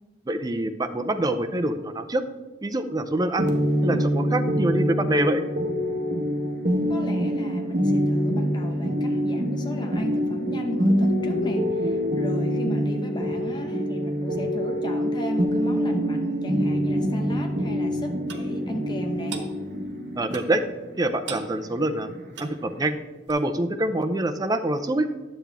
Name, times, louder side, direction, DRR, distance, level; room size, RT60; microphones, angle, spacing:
voice 1, 0.3-2.2 2.6-3.5 3.8-5.5 20.2-20.6 21.0-22.1 22.4-22.9 23.3-25.1, right 1 dB, 20° right, 7 dB, 0.5 m, -25 dB
sound 1, 3.4-23.0, equal, 50° right, 1.0 m, -25 dB
voice 2, 6.9-19.4, equal, 25° left, 3 dB, 0.9 m, -35 dB
Clock, 18.3-18.5 19.3-19.5 20.3-20.6 21.3-21.5 22.3-22.6 23.3-23.4, right 5 dB, 90° right, 1.0 m, -36 dB
10.0 x 7.3 x 3.4 m, 1.2 s
head